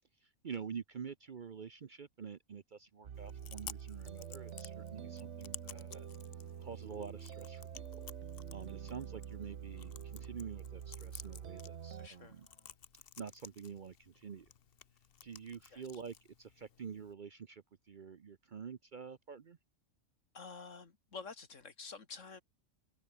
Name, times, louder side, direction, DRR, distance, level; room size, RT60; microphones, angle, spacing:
voice 1, 0.2-6.1 6.6-8.1 8.5-12.5 13.2-14.5 15.2-19.6, right 6 dB, 45° right, 0.8 m, -47 dB
sound 1, 3.0-12.1, right 8 dB, 60° right, 1.3 m, -47 dB
Chewing mastication, 3.1-17.1, left 7 dB, 50° left, 1.1 m, -55 dB
sound 2, 5.7-12.8, left 1 dB, 20° left, 6.1 m, -73 dB
voice 2, 12.0-12.4 15.7-15.8 20.3-22.4, left 4 dB, 65° left, 2.5 m, -49 dB
omnidirectional pair, 1.4 m